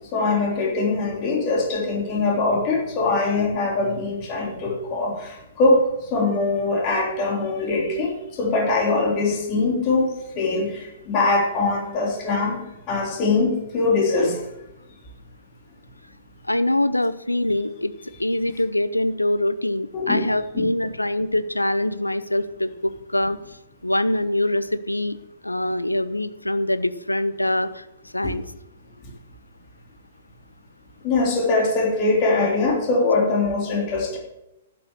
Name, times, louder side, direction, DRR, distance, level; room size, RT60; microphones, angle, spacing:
voice 1, 0.1-12.6 12.9-14.4 19.9-20.2 20.5-20.7 28.2-28.3 29.0-29.1 31.0-34.2, left 3 dB, 35° left, -1 dB, 3.4 m, -22 dB
voice 2, 16.4-17.9 18.2-23.4 23.8-25.2 25.4-27.9 28.1-28.4, left 1 dB, 85° left, 14 dB, 0.7 m, -24 dB
11.5 x 7.8 x 6.7 m, 0.90 s
figure-of-eight pair, 115°, 0 cm